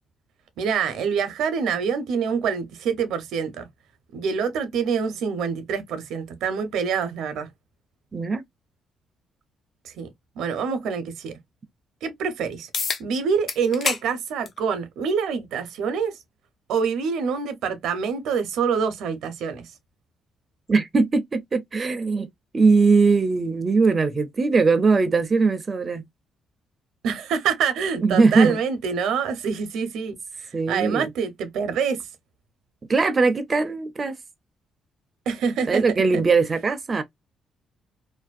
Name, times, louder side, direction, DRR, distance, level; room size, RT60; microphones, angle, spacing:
voice 1, 0.6-3.7 4.1-7.5 9.8-11.4 12.0-12.7 13.0-16.2 16.7-19.7 27.0-32.0 35.3-35.8 36.1-36.2, right 6 dB, 85° right, 0.6 m, -26 dB
voice 2, 8.1-8.4 20.7-22.3 22.5-26.0 28.0-28.6 30.5-31.1 32.9-34.1 35.7-37.0, right 4 dB, 35° right, 0.4 m, -20 dB
sound 1, 12.7-13.0 13.5-14.0 14.4-14.6 15.7-15.8 20.7-20.8, left 5 dB, 55° left, 0.6 m, -27 dB
2.5 x 2.1 x 2.3 m
cardioid pair, 90°, 0 cm